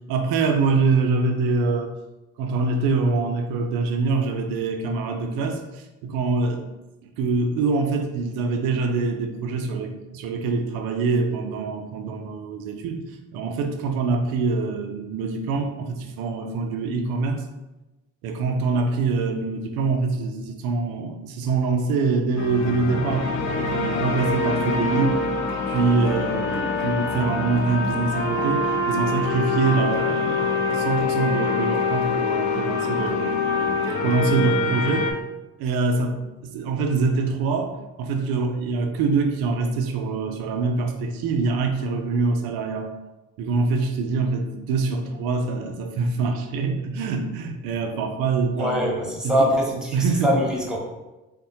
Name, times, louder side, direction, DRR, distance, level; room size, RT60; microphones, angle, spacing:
voice 1, 0.1-2.0 2.4-6.6 7.2-13.0 13.3-17.4 18.2-25.2 25.7-33.4 34.0-35.2 35.6-42.9 43.4-49.0 49.2-49.3 49.9-50.3, right 4 dB, 75° right, 5 dB, 0.5 m, -24 dB
sound 1, 22.4-35.1, left 3 dB, 50° left, 0.6 m, -25 dB
voice 2, 48.6-49.9 50.2-50.8, equal, ahead, -1 dB, 0.9 m, -23 dB
3.5 x 2.1 x 2.7 m, 1.0 s
hypercardioid pair, 55°, 37 cm